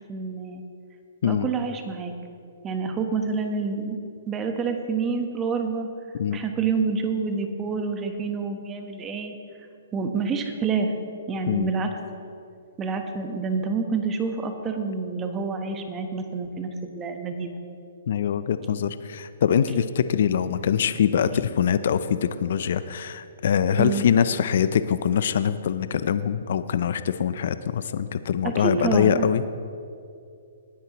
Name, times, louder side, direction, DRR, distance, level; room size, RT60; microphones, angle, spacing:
voice 1, 0.1-0.6 1.2-2.1 2.6-4.0 4.3-5.9 6.3-9.3 9.9-10.9 11.3-11.9 12.8-17.6 23.7-24.0 28.4-29.3, right 5 dB, 20° right, 5 dB, 1.1 m, -28 dB
voice 2, 18.1-29.4, left 8 dB, 65° left, 13 dB, 0.5 m, -23 dB
19.0 x 10.0 x 3.1 m, 2.5 s
hypercardioid pair, 140°, 0 cm